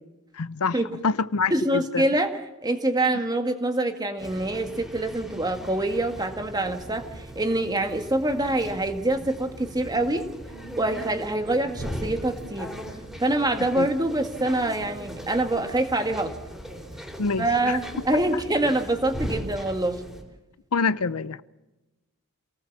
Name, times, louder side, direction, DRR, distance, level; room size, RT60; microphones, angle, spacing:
voice 1, 0.3-0.8 1.0-2.0 13.8-13.9 17.2-17.8 18.1-18.2 20.7-21.4, left 4 dB, 85° left, 0.7 m, -26 dB
voice 2, 1.5-10.2 10.8-12.7 13.2-16.3 17.4-20.0, right 1 dB, 20° right, 2.0 m, -25 dB
sound 1, 4.2-20.2, equal, ahead, 4.1 m, -39 dB
27.5 x 18.5 x 7.4 m
head